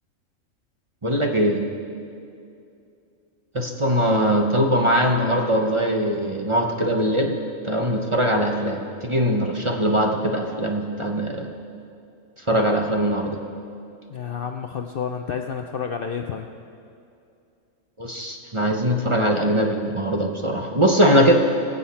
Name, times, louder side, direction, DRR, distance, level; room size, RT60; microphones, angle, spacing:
voice 1, 1.0-1.6 3.5-7.3 7.6-11.5 12.4-13.4 18.0-21.3, equal, 25° right, 1 dB, 0.8 m, -21 dB
voice 2, 14.1-16.5, left 7 dB, 60° left, 5 dB, 0.6 m, -30 dB
23.0 x 7.8 x 4.3 m, 2.5 s
omnidirectional pair, 1.4 m